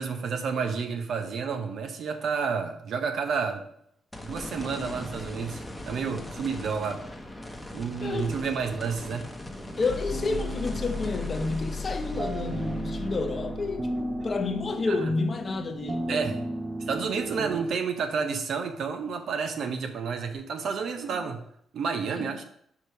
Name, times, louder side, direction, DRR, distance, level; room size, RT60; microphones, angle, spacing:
voice 1, 0.0-3.6 4.2-7.0 7.7-9.3 14.9-15.1 16.1-16.4 16.9-21.4 21.7-22.4, right 5 dB, 70° right, 0.7 m, -30 dB
sound 1, 4.1-16.4 16.9-17.0 20.3-20.4, left 1 dB, 10° left, 0.9 m, -41 dB
voice 2, 8.0-8.5 9.8-16.2 21.1-21.2 22.2-22.3, left 3 dB, 40° left, 0.8 m, -30 dB
sound 2, 9.5-17.7, right 2 dB, 25° right, 0.8 m, -36 dB
sound 3, 9.9-14.9, left 5 dB, 65° left, 0.5 m, -38 dB
5.3 x 4.8 x 4.6 m
cardioid pair, 80°, 0 cm